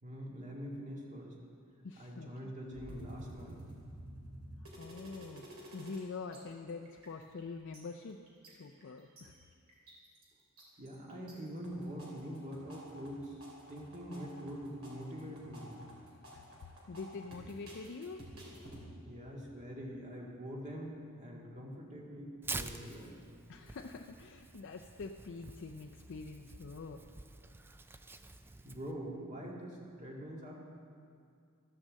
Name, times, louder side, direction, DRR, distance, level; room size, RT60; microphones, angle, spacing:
voice 1, 0.0-1.4 2.0-3.6 10.8-13.4 13.7-15.8 19.0-23.1 28.6-30.5, equal, 35° right, -3 dB, 2.1 m, -44 dB
voice 2, 1.8-2.5 4.8-5.5 5.7-8.2 8.5-9.4 16.3-16.4 16.9-18.2 23.5-27.0, left 4 dB, 55° left, 2 dB, 0.5 m, -45 dB
sound 1, 2.7-6.0 6.3-6.4 6.7-7.4 7.7-9.2 9.7-10.2 10.6-11.3 11.6-18.8, right 1 dB, 65° right, 3.0 m, -51 dB
Tearing, 22.4-28.9, right 3 dB, 10° right, 0.3 m, -47 dB
13.5 x 6.3 x 7.5 m, 2.4 s
head